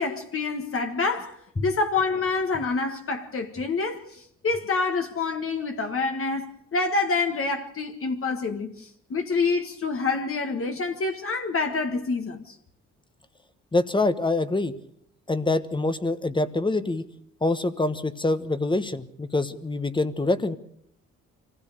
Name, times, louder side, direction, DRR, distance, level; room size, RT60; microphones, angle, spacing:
voice 1, 0.0-1.3 1.6-12.6, left 4 dB, 45° left, 1.7 m, -27 dB
voice 2, 13.7-14.7 15.3-17.0 17.4-20.6, left 2 dB, 15° left, 1.3 m, -25 dB
24.0 x 16.0 x 6.8 m
cardioid pair, 90°, 30 cm